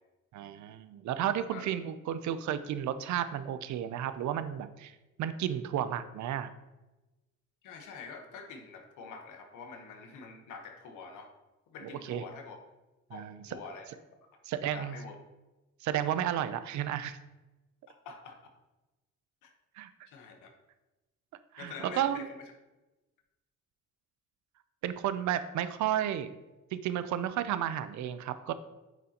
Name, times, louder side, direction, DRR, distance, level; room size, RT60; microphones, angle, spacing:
voice 1, 0.3-6.5 11.8-12.2 13.1-13.6 14.4-15.0 15.8-17.2 19.8-19.9 21.5-22.3 24.8-26.3 26.7-28.5, right 10 dB, 70° right, 12 dB, 0.5 m, -33 dB
voice 2, 7.6-11.3 11.7-12.6 13.1-13.2 13.5-13.8 14.7-15.2 17.9-18.4 19.4-19.5 20.1-20.5 21.6-22.4, left 5 dB, 90° left, 4 dB, 1.1 m, -46 dB
9.1 x 3.8 x 2.9 m, 1.1 s
cardioid pair, 90°, 30 cm